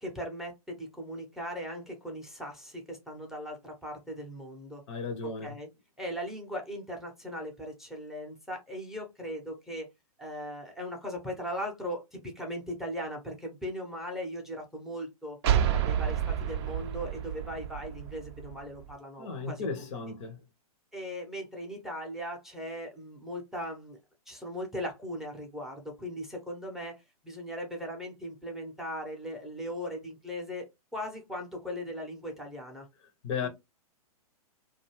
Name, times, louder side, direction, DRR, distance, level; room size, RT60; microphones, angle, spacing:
voice 1, 0.0-4.8 5.4-5.7 6.0-9.9 10.2-15.4 15.7-19.9 20.9-24.0 24.3-32.9 33.4-33.5, equal, ahead, 0.6 m, -39 dB
voice 2, 4.9-5.6 19.2-20.4 33.2-33.5, left 5 dB, 50° left, 0.7 m, -35 dB
sound 1, 15.4-18.9, right 9 dB, 45° right, 0.4 m, -30 dB
2.5 x 2.3 x 2.9 m
hypercardioid pair, 125°, 20 cm